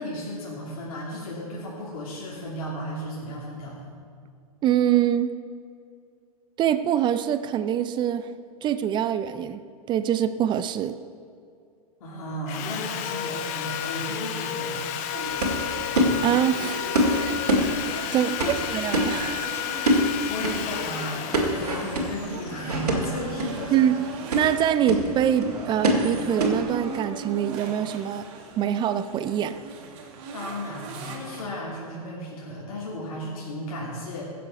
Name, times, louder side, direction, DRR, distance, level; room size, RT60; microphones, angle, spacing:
voice 1, 0.0-3.9 12.0-14.9 17.6-17.8 18.2-18.5 20.3-23.9 30.3-34.2, equal, 65° left, -4 dB, 2.9 m, -34 dB
voice 2, 4.6-5.3 6.6-8.3 8.6-9.6 9.9-11.0 16.2-17.4 18.1-19.5 23.7-24.0 24.3-28.2 28.6-29.6, right 10 dB, 25° right, 12 dB, 0.4 m, -24 dB
Sawing, 12.5-23.5, left 9 dB, 40° left, 0.8 m, -32 dB
sound 1, 15.1-27.0, equal, 85° right, 2.1 m, -27 dB
sound 2, 18.3-31.4, right 4 dB, 50° right, 1.9 m, -41 dB
16.5 x 6.9 x 4.8 m, 2.3 s
hypercardioid pair, 110°, 19 cm